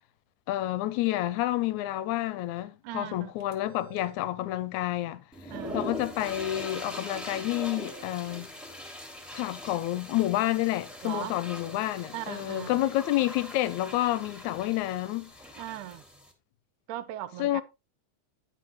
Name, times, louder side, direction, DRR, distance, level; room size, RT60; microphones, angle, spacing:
voice 1, 0.5-8.5 9.3-15.3 17.4-17.6, left 15 dB, 80° left, 1.9 m, -29 dB
voice 2, 2.8-3.3 5.5-5.8 11.0-11.3 12.1-12.8 15.6-16.0 16.9-17.6, right 13 dB, 80° right, 2.2 m, -38 dB
sound 1, 3.4-4.3 6.6-6.7 7.8-8.4, right 6 dB, 45° right, 1.7 m, -51 dB
sound 2, 5.3-16.3, left 1 dB, ahead, 1.4 m, -42 dB
9.5 x 7.8 x 3.1 m
omnidirectional pair, 3.5 m